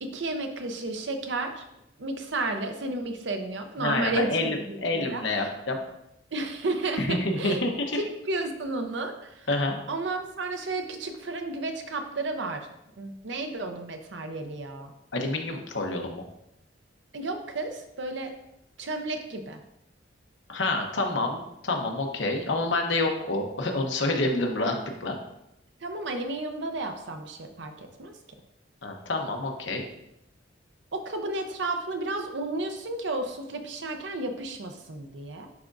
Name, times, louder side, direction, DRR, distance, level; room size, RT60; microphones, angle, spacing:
voice 1, 0.0-1.6 2.0-5.5 6.3-7.6 8.3-9.5 9.9-12.7 13.0-14.9 17.1-18.3 18.8-19.6 25.8-28.1 30.9-35.5, right 2 dB, 65° right, 6 dB, 0.7 m, -32 dB
voice 2, 3.8-5.8 7.0-8.0 9.5-9.7 15.1-16.2 20.5-25.2 28.8-29.8, left 2 dB, 70° left, 3 dB, 0.9 m, -28 dB
10.5 x 3.6 x 2.6 m, 0.82 s
head